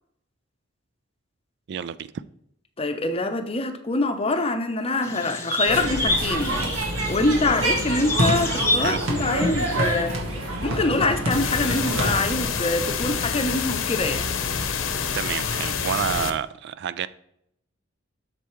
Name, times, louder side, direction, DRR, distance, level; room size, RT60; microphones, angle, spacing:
voice 1, 1.7-2.2 8.8-9.0 15.1-17.1, right 8 dB, 60° right, 0.3 m, -29 dB
voice 2, 2.8-10.1 10.4-14.3, left 2 dB, 30° left, 0.7 m, -25 dB
sound 1, 5.0-10.0, left 2 dB, 15° left, 1.1 m, -29 dB
sound 2, 5.7-12.4, right 1 dB, 90° right, 1.7 m, -26 dB
sound 3, 11.3-16.3, left 6 dB, 80° left, 0.8 m, -27 dB
8.0 x 6.7 x 3.1 m
head